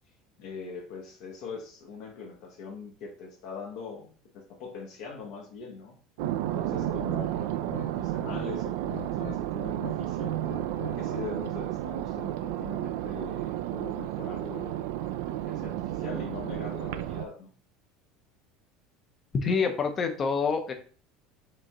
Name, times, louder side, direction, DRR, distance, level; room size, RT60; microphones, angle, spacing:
voice 1, 0.4-6.0 6.4-10.4 10.8-17.5, left 5 dB, 60° left, -1 dB, 1.1 m, -42 dB
sound 1, 6.2-17.3, right 13 dB, 80° right, 0.4 m, -32 dB
sound 2, 6.7-7.0 7.3-8.5 8.7-9.4 9.7-11.6, left 11 dB, 90° left, 0.5 m, -44 dB
voice 2, 19.3-20.7, left 5 dB, 25° left, 6 dB, 0.7 m, -26 dB
5.1 x 3.4 x 3.0 m, 0.41 s
cardioid pair, 165°, 0 cm